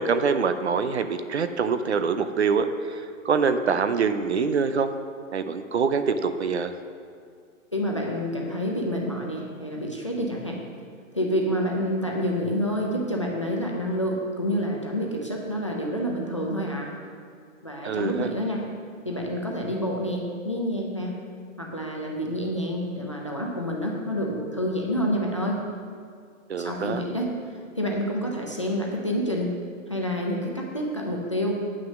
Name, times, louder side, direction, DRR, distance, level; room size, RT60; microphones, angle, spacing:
voice 1, 0.0-4.9 5.3-6.7 17.8-18.3 26.5-27.0, right 5 dB, 50° right, 10 dB, 0.6 m, -25 dB
voice 2, 7.7-10.6 11.1-16.9 17.6-18.6 19.0-21.1 21.6-25.6 26.6-27.3 27.8-29.5 29.9-31.7, equal, 25° left, -1 dB, 0.5 m, -28 dB
9.4 x 6.2 x 6.1 m, 2.2 s
hypercardioid pair, 175°, 41 cm